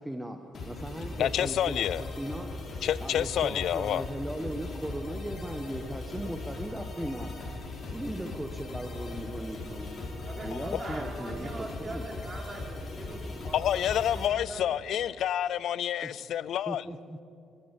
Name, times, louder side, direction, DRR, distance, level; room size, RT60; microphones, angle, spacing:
voice 1, 0.0-1.9 2.2-2.5 3.0-7.3 7.9-10.1 10.4-12.0 16.0-16.1 16.7-17.2, right 1 dB, 5° right, 1.3 m, -38 dB
sound 1, 0.5-14.3, left 2 dB, 50° left, 4.6 m, -39 dB
voice 2, 1.2-2.0 2.8-4.1 10.5-11.1 13.5-16.8, left 10 dB, 75° left, 0.4 m, -29 dB
voice 3, 10.2-14.8, right 2 dB, 35° right, 4.1 m, -42 dB
23.5 x 14.0 x 8.4 m
cardioid pair, 90°, 0 cm